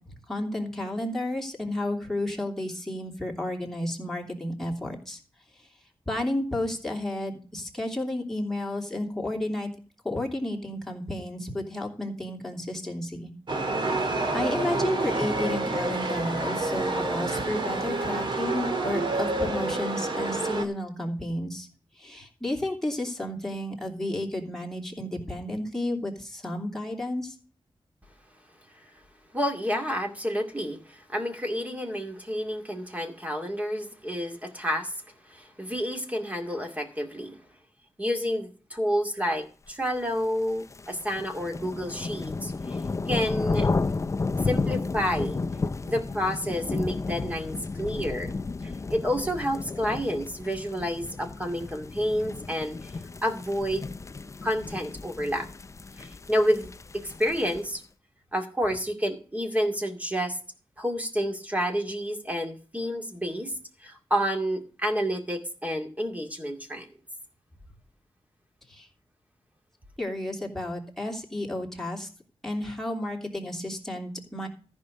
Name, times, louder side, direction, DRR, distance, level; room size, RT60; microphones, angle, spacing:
voice 1, 0.1-5.2 6.1-9.7 10.0-13.3 13.8-21.7 22.0-27.3 68.7-68.9 70.0-72.1 72.4-74.5, left 1 dB, 5° left, -1 dB, 2.9 m, -32 dB
Chatter / Subway metro underground, 13.5-20.7, right 2 dB, 55° right, 1.8 m, -28 dB
voice 2, 29.3-35.0 35.3-37.4 38.0-42.8 43.1-43.7 44.4-45.4 45.8-48.3 48.6-52.9 53.2-53.9 54.4-55.5 56.0-57.8 58.3-60.4 60.8-63.5 63.8-66.9, equal, 15° right, 3 dB, 2.2 m, -29 dB
sound 1, 40.2-57.8, left 3 dB, 30° left, 0.5 m, -33 dB
14.0 x 5.4 x 6.3 m, 0.39 s
wide cardioid pair, 140°, 10 cm